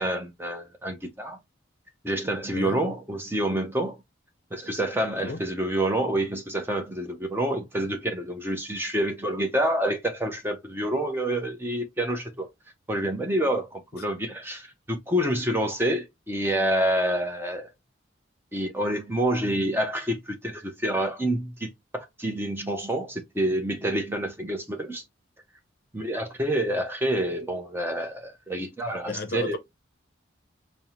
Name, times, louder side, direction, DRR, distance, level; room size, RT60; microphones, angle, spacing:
voice 1, 0.0-1.4 2.0-3.9 4.5-12.5 12.9-17.7 18.5-25.0 25.9-29.6, right 1 dB, 10° right, 0.6 m, -28 dB
voice 2, 29.1-29.6, left 3 dB, 50° left, 0.6 m, -33 dB
5.2 x 2.1 x 2.9 m
head